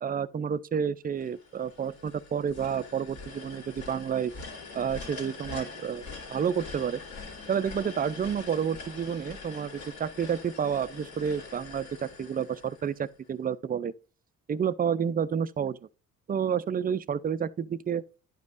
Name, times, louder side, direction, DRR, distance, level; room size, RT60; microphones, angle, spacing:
voice 1, 0.0-4.3 4.7-6.0 6.3-7.0 7.5-13.9 14.5-15.8 16.3-18.0, right 7 dB, 30° right, 0.4 m, -30 dB
sound 1, 1.2-13.3, left 4 dB, 70° left, 2.3 m, -44 dB
10.5 x 5.3 x 2.5 m
cardioid pair, 90°, 30 cm